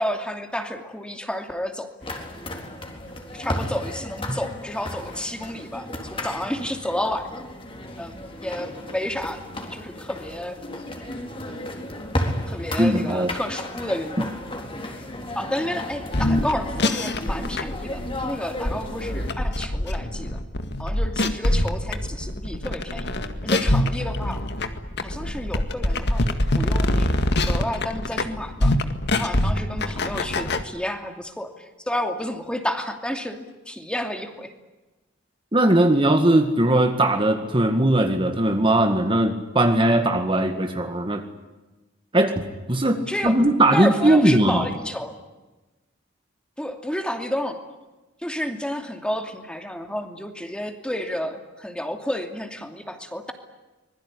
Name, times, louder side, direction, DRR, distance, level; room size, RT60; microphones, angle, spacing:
voice 1, 0.0-1.9 3.3-7.4 8.0-9.4 9.7-10.6 11.5-11.6 12.5-14.3 15.3-20.4 20.8-23.1 23.4-24.4 25.0-27.1 27.5-28.8 29.1-34.5 43.1-43.4 43.7-45.1 46.6-47.6 48.2-53.3, left 1 dB, 5° left, 5 dB, 2.6 m, -30 dB
sound 1, 2.0-19.3, left 1 dB, 30° left, 4.0 m, -34 dB
voice 2, 12.8-13.3 14.2-14.3 35.5-41.2 42.1-42.4 42.7-44.7, right 1 dB, 25° right, 6 dB, 1.9 m, -19 dB
sound 2, 16.0-30.6, left 1 dB, 60° left, 2.0 m, -24 dB
25.5 x 21.5 x 9.9 m, 1.1 s
head